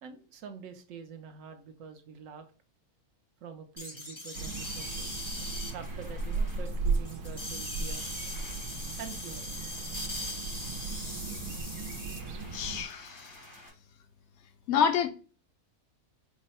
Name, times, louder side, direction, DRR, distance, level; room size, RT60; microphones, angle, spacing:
voice 1, 0.0-2.5 3.4-5.2 5.7-8.1 9.0-9.5, right 6 dB, 65° right, 0.9 m, -45 dB
sound 1, 3.8-13.7, left 1 dB, 20° left, 0.6 m, -41 dB
sound 2, 4.3-12.8, right 4 dB, 85° right, 1.1 m, -36 dB
voice 2, 12.5-13.4 14.7-15.1, left 7 dB, 70° left, 0.6 m, -28 dB
4.6 x 2.1 x 4.1 m
omnidirectional pair, 1.6 m